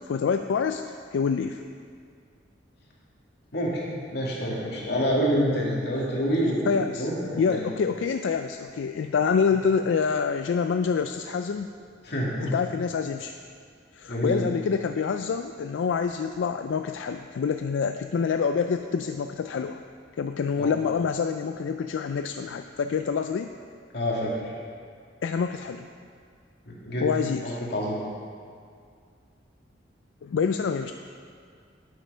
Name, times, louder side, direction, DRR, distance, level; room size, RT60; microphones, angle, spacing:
voice 1, 0.1-0.8 1.1-1.6 6.7-7.1 7.4-11.7 12.4-13.4 13.9-19.8 20.2-23.5 25.2-25.9 27.0-27.6 30.2-30.9, left 6 dB, 85° left, 7 dB, 0.4 m, -26 dB
voice 2, 4.1-7.6 12.0-12.5 14.1-14.4 20.6-20.7 23.9-24.5 26.7-27.1 27.4-28.0, equal, 60° left, -4 dB, 2.3 m, -27 dB
9.3 x 8.2 x 5.5 m, 2.2 s
head